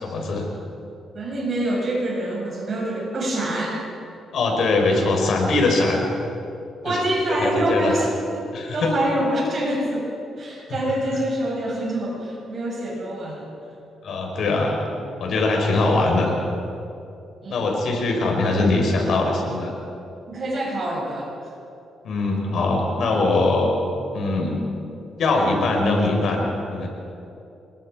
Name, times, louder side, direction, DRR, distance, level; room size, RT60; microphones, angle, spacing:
voice 1, 0.0-0.5 4.3-6.1 6.9-7.0 7.4-7.9 8.5-8.9 14.0-16.4 17.5-19.7 22.0-23.7 24.1-24.6 25.2-26.9, left 2 dB, 60° left, 1 dB, 4.7 m, -22 dB
voice 2, 1.1-3.8 6.8-8.1 8.3-13.5 17.4-17.7 20.3-21.3, right 1 dB, 40° right, -2 dB, 7.2 m, -26 dB
27.5 x 22.0 x 5.0 m, 2.7 s
cardioid pair, 135°, 0 cm